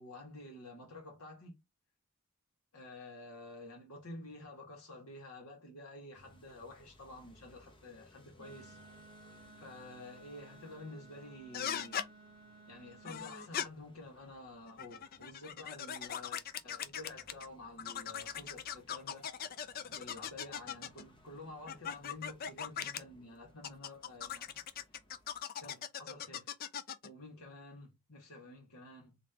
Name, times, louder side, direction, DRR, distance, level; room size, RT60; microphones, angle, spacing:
voice 1, 0.0-1.6 2.7-8.8 9.6-12.0 12.7-19.3 19.9-24.6 25.6-26.5 27.0-29.2, left 2 dB, 75° left, 1.9 m, -50 dB
sound 1, 6.1-25.4, left 1 dB, 20° left, 0.8 m, -64 dB
Wind instrument woodwind instrument, 8.4-13.5, right 3 dB, 25° right, 0.9 m, -57 dB
sound 2, 11.5-12.1 13.0-13.7 14.7-17.5 17.8-21.0 21.7-23.0 23.6-27.1, left 8 dB, 40° left, 0.4 m, -40 dB
3.7 x 3.3 x 2.8 m
head